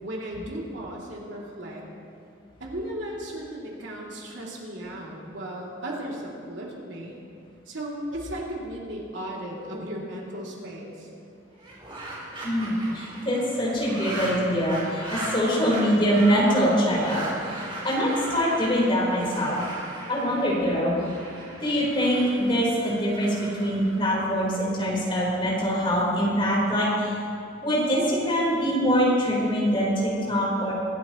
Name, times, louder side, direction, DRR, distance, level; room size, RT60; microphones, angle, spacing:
voice 1, 0.0-1.8 2.6-7.2 7.7-11.1, right 1 dB, 75° right, -3 dB, 2.9 m, -35 dB
sound 1, 11.5-24.7, right 1 dB, 30° right, 4.1 m, -38 dB
voice 2, 12.4-17.2 17.5-19.6 20.1-21.0 21.6-23.3 23.6-27.2 27.6-30.7, equal, 30° left, -5 dB, 4.2 m, -24 dB
24.0 x 12.0 x 3.1 m, 2.5 s
head